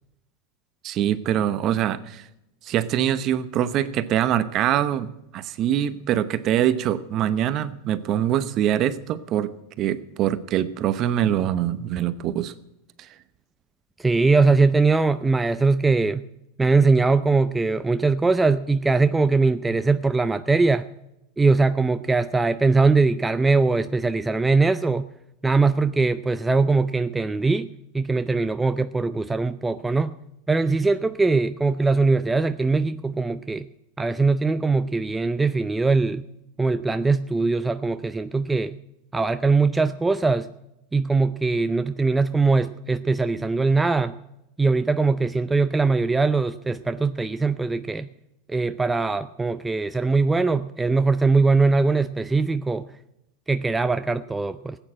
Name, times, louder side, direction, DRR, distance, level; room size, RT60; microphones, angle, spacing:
voice 1, 0.8-2.3 2.6-9.5 9.8-12.5, right 11 dB, 45° right, 14 dB, 0.9 m, -24 dB
voice 2, 14.0-16.2 16.6-20.8 21.4-25.1 25.4-27.7 27.9-30.1 30.5-33.7 34.0-36.2 36.6-38.8 39.1-40.5 40.9-44.1 44.6-48.1 48.5-52.9 53.5-54.8, right 3 dB, 10° right, 11 dB, 0.5 m, -21 dB
15.0 x 9.1 x 7.6 m, 0.85 s
hypercardioid pair, 110°, 0 cm